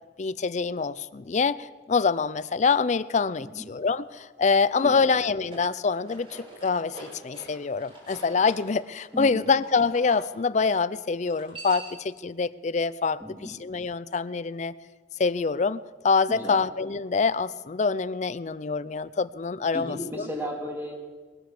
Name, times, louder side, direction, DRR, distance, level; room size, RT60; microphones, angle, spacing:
voice 1, 0.2-14.7 15.2-20.0, left 4 dB, 40° left, 17 dB, 0.5 m, -25 dB
voice 2, 4.8-5.2 9.1-9.5 13.2-13.5 16.3-16.6 19.7-20.9, equal, 15° right, -1 dB, 3.3 m, -35 dB
sound 1, 5.3-10.2 11.2-12.1, right 2 dB, 30° right, 5.3 m, -45 dB
20.5 x 9.2 x 6.7 m, 1.3 s
head